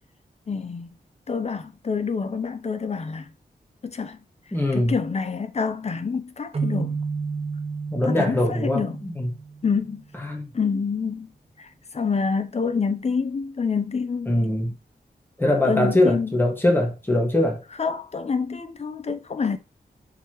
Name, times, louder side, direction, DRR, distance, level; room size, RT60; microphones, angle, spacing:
voice 1, 0.5-0.9 1.3-3.3 3.8-4.2 4.7-7.0 8.1-9.0 9.6-10.0 10.5-11.3 11.6-11.7 11.9-14.4 15.6-16.4 17.8-19.6, left 5 dB, 40° left, 0.5 m, -27 dB
voice 2, 4.5-4.9 7.9-9.3 10.2-10.5 14.3-14.7 15.4-17.6, left 1 dB, 10° left, 1.3 m, -22 dB
sound 1, 6.5-10.1, right 5 dB, 35° right, 0.6 m, -31 dB
4.7 x 3.3 x 2.9 m
wide cardioid pair, 115°, 17 cm